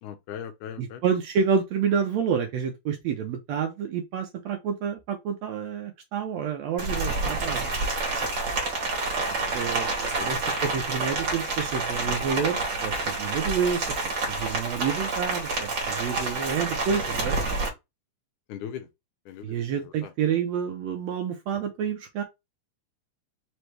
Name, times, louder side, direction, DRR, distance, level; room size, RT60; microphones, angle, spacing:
voice 1, 0.0-1.0 10.0-10.4 16.3-16.5 18.5-18.9 19.3-19.6 19.8-20.1, left 9 dB, 80° left, 2.2 m, -39 dB
voice 2, 0.8-7.7 9.5-17.4 19.4-22.2, right 7 dB, 75° right, 1.6 m, -29 dB
Rain, 6.8-17.7, right 3 dB, 40° right, 2.1 m, -28 dB
5.2 x 3.0 x 3.2 m
omnidirectional pair, 3.7 m